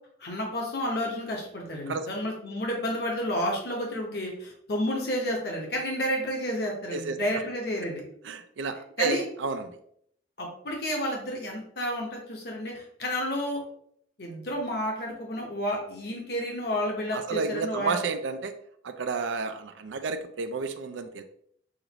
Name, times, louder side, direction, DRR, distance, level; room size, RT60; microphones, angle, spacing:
voice 1, 0.2-8.0 9.0-9.2 10.4-13.6 14.2-18.0, equal, 55° left, -1 dB, 1.0 m, -31 dB
voice 2, 6.9-7.4 8.2-9.8 17.1-18.5 18.8-21.2, right 4 dB, 75° right, 9 dB, 0.4 m, -31 dB
6.2 x 2.6 x 3.0 m, 0.67 s
head